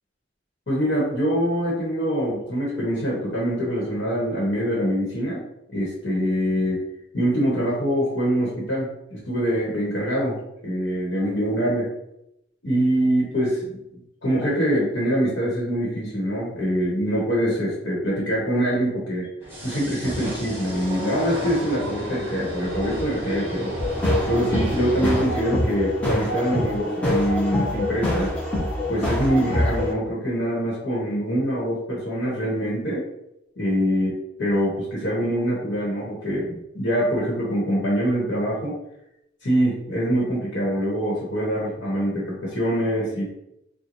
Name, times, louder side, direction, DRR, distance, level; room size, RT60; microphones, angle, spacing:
voice 1, 0.7-5.4 5.7-6.8 7.1-11.9 12.6-13.8 14.2-19.3 19.6-23.7 24.3-28.3 28.9-33.0 33.6-38.7 39.4-43.2, equal, 70° left, -5 dB, 1.1 m, -24 dB
sound 1, 19.4-25.2, right 1 dB, 15° right, 1.0 m, -32 dB
sound 2, 23.8-29.9, left 1 dB, 5° left, 0.7 m, -25 dB
3.0 x 2.2 x 3.9 m, 0.83 s
head